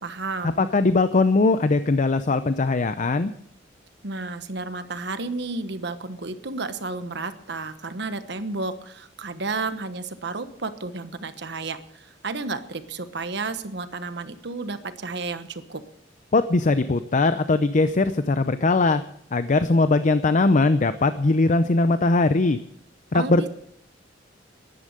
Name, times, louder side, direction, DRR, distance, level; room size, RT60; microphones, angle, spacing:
voice 1, 0.0-0.7 4.0-15.8 23.1-23.5, right 3 dB, 70° right, 10 dB, 1.2 m, -32 dB
voice 2, 0.6-3.3 16.3-19.0 19.3-22.6 23.1-23.5, left 3 dB, 45° left, 12 dB, 0.6 m, -20 dB
14.0 x 11.0 x 6.6 m, 0.71 s
head